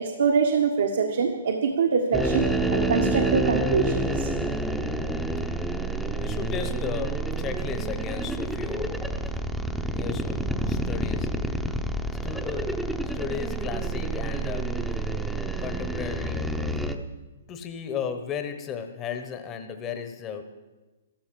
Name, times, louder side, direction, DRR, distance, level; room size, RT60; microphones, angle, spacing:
voice 1, 0.0-4.3, right 5 dB, 75° right, 3 dB, 1.5 m, -24 dB
sound 1, 2.1-16.9, right 2 dB, ahead, 0.8 m, -28 dB
voice 2, 6.1-9.1 10.0-11.4 12.2-12.9 13.1-14.8 15.6-16.9 17.5-20.4, left 7 dB, 20° left, 7 dB, 1.0 m, -35 dB
13.0 x 13.0 x 7.6 m, 1.2 s
hypercardioid pair, 155°, 0 cm